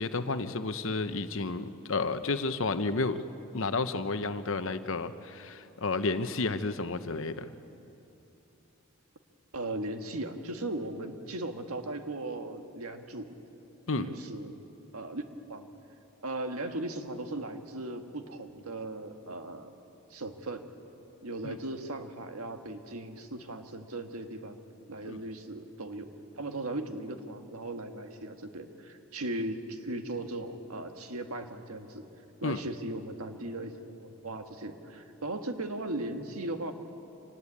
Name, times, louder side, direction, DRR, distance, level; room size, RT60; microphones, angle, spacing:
voice 1, 0.0-3.2 3.5-7.5 13.9-14.1 21.4-21.6 25.1-25.2 32.4-32.6, left 3 dB, 60° left, 10 dB, 0.9 m, -31 dB
voice 2, 9.5-13.4 13.9-14.5 14.9-15.2 15.5-15.7 16.2-19.7 20.1-20.6 21.2-24.6 24.9-26.1 26.4-32.1 32.4-36.7, right 2 dB, 80° right, 6 dB, 1.6 m, -37 dB
26.0 x 19.5 x 8.7 m, 2.9 s
head